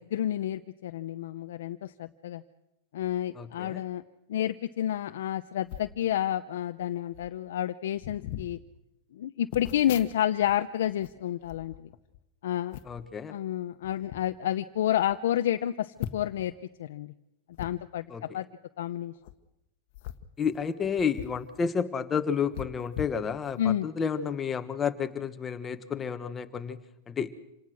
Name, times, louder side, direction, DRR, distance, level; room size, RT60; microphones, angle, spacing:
voice 1, 0.0-2.4 2.9-4.0 4.3-8.6 9.1-11.9 12.4-12.8 13.3-16.5 16.8-17.1 17.6-18.5 18.8-19.1 23.6-23.9, left 11 dB, 80° left, 8 dB, 0.7 m, -30 dB
voice 2, 3.4-3.8 12.9-13.3 18.1-18.2 20.4-26.8 27.1-27.3, left 6 dB, 15° left, 9 dB, 1.3 m, -31 dB
sound 1, 5.7-6.0 6.8-6.9 7.1-7.4 8.0-8.5 9.5-10.5 10.8-12.2 12.7-13.1 13.8-14.2 14.8-14.9 15.1-15.2 16.0-16.5 17.5-17.7 19.1-19.3 19.9-21.4 21.7-21.8 22.5-23.7 24.2-24.4, left 12 dB, 55° left, 1.4 m, -41 dB
27.0 x 19.0 x 6.4 m, 0.90 s
supercardioid pair, 145°, 0 cm